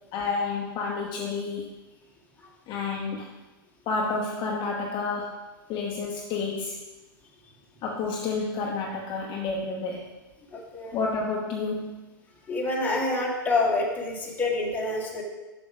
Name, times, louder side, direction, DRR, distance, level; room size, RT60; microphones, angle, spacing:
voice 1, 0.1-1.7 2.7-3.3 3.9-5.3 5.7-6.8 7.8-10.1 10.9-11.9, left 4 dB, 35° left, -1 dB, 1.0 m, -30 dB
voice 2, 10.5-11.0 12.5-15.2, left 2 dB, 15° left, -2 dB, 1.9 m, -27 dB
6.9 x 6.4 x 4.9 m, 1.2 s
hypercardioid pair, 115°, 12 cm